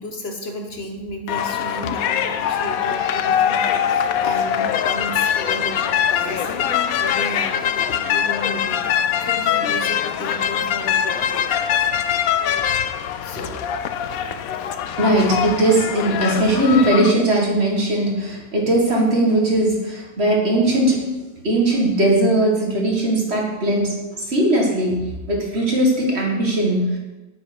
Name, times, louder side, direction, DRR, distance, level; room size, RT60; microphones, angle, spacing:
voice 1, 0.0-11.5 13.2-13.7, left 1 dB, 45° left, 3 dB, 1.2 m, -33 dB
sound 1, 1.3-17.1, left 9 dB, 70° left, 1.0 m, -22 dB
voice 2, 15.0-21.1 21.4-27.0, right 1 dB, 40° right, -1 dB, 2.0 m, -19 dB
9.1 x 7.2 x 5.2 m, 1.1 s
omnidirectional pair, 1.7 m